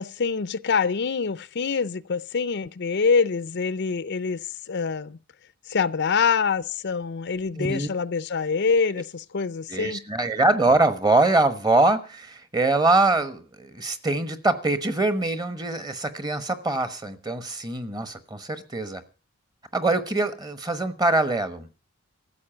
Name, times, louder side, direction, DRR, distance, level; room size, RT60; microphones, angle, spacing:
voice 1, 0.0-4.4 4.7-5.2 5.7-10.0, left 5 dB, 55° left, 0.6 m, -25 dB
voice 2, 7.6-7.9 9.7-19.0 19.7-21.7, right 2 dB, 20° right, 1.2 m, -23 dB
14.0 x 7.5 x 8.9 m
head